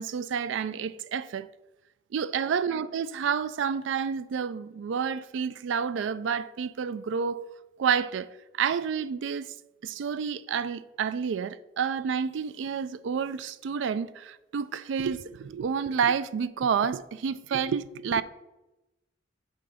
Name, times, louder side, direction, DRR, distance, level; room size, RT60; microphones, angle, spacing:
voice 1, 0.0-1.5 2.1-7.5 7.8-8.3 8.6-9.5 9.8-18.2, right 6 dB, 70° right, 0.3 m, -29 dB
5.8 x 3.9 x 4.9 m
head